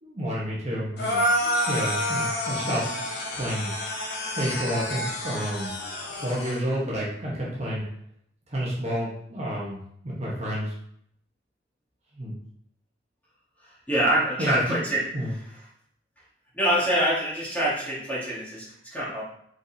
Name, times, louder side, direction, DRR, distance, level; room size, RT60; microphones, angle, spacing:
voice 1, 0.0-2.9 3.3-3.7 4.4-5.7 6.1-7.8 8.5-9.8 10.0-10.7 12.1-12.3 14.4-15.3, equal, 35° right, -5 dB, 1.1 m, -30 dB
sound 1, 1.0-6.6, equal, 60° left, 1.0 m, -28 dB
voice 2, 13.6-15.0 16.5-19.2, right 1 dB, 10° left, -8 dB, 1.6 m, -25 dB
4.7 x 4.0 x 2.8 m, 0.68 s
head